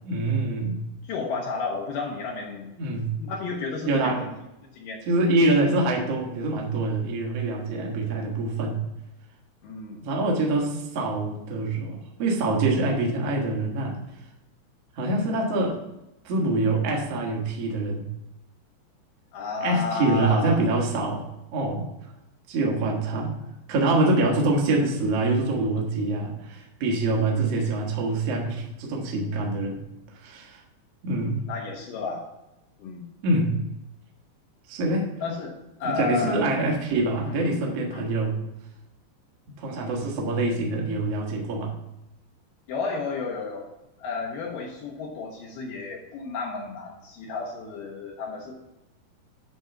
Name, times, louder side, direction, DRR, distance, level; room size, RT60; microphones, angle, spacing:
voice 1, 0.0-0.8 2.8-3.1 3.9-4.2 5.0-8.8 10.0-14.0 14.9-15.8 16.2-18.0 19.6-21.2 21.5-21.9 22.5-23.3 23.7-29.8 30.1-30.6 31.0-31.4 33.2-33.6 34.7-35.1 35.8-38.4 39.6-41.7, right 2 dB, 75° right, -1 dB, 1.4 m, -25 dB
voice 2, 1.0-2.8 3.2-4.3 4.7-5.0 9.6-10.0 19.3-20.6 31.5-32.2 32.8-33.1 35.2-35.5 35.8-36.4 37.3-37.5 37.9-38.1 42.7-43.7 44.0-48.6, left 4 dB, 85° left, -1 dB, 1.9 m, -32 dB
10.0 x 3.9 x 5.7 m, 0.93 s
omnidirectional pair, 5.3 m